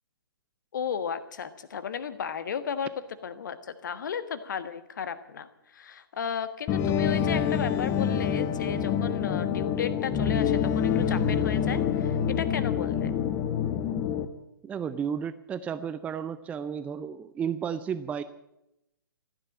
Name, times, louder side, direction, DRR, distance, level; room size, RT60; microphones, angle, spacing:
voice 1, 0.7-2.9 3.2-13.1, left 7 dB, 55° left, 12 dB, 1.4 m, -34 dB
sound 1, 6.7-14.3, left 8 dB, 25° left, 1.2 m, -26 dB
voice 2, 14.6-18.2, right 7 dB, 10° right, 14 dB, 0.5 m, -33 dB
15.0 x 10.5 x 8.9 m, 0.88 s
figure-of-eight pair, 120°, 12 cm